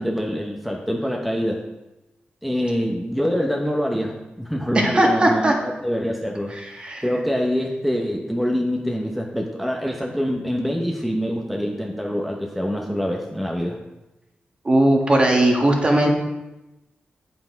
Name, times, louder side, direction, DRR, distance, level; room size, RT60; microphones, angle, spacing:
voice 1, 0.0-1.6 2.4-5.5 5.8-6.5 7.0-13.8, equal, ahead, -1 dB, 0.8 m, -25 dB
voice 2, 4.7-5.5 6.5-7.0 14.6-16.1, right 1 dB, 30° right, 1 dB, 1.4 m, -18 dB
8.5 x 5.7 x 4.5 m, 0.99 s
wide cardioid pair, 130°, 4 cm